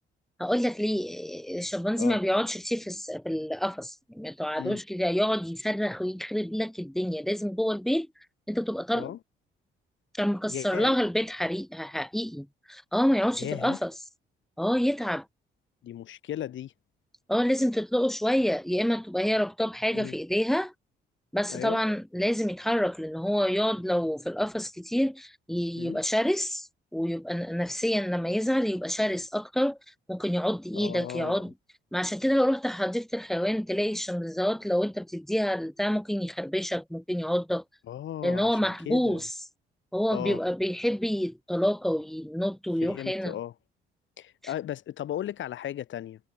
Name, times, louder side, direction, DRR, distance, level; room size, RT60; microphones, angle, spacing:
voice 1, 0.4-8.1 8.5-9.1 10.1-13.9 14.6-15.2 17.3-20.7 21.3-26.7 26.9-29.8 30.1-31.5 31.9-37.6 38.2-39.3 39.9-43.4, equal, ahead, 3.5 m, -28 dB
voice 2, 10.5-10.9 13.4-13.8 15.8-16.7 19.9-20.2 21.5-21.8 25.7-26.0 30.7-31.4 37.9-39.2 40.1-40.4 42.8-43.5 44.2-46.2, left 11 dB, 75° left, 5.0 m, -36 dB
cardioid pair, 90°, 20 cm